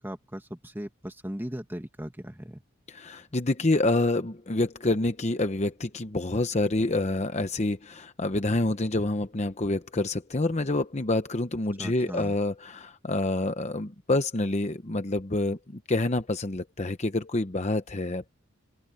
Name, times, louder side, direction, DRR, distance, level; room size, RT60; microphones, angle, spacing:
voice 1, 0.0-2.6 11.8-12.4, equal, 10° right, 2.0 m, -38 dB
voice 2, 2.9-18.3, left 2 dB, 30° left, 0.9 m, -27 dB
open air
head